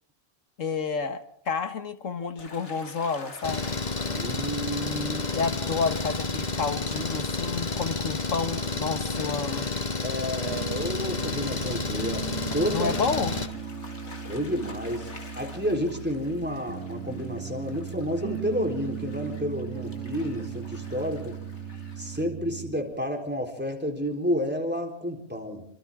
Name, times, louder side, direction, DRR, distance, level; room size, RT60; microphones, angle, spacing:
voice 1, 0.6-3.8 5.0-9.7 12.7-13.3, left 5 dB, 85° left, 9 dB, 1.9 m, -30 dB
Gull seagull / Waves surf, 2.4-22.2, left 3 dB, 65° left, 2.7 m, -49 dB
Engine, 3.4-13.5, left 3 dB, 35° left, 1.5 m, -30 dB
voice 2, 4.0-5.2 10.0-12.3 12.5-12.9 14.3-15.1 15.3-21.4 22.0-25.7, equal, 10° right, 3 dB, 4.0 m, -30 dB
Piano, 10.4-22.9, right 7 dB, 80° right, 1.7 m, -38 dB
28.5 x 25.5 x 3.8 m, 0.68 s
omnidirectional pair, 1.3 m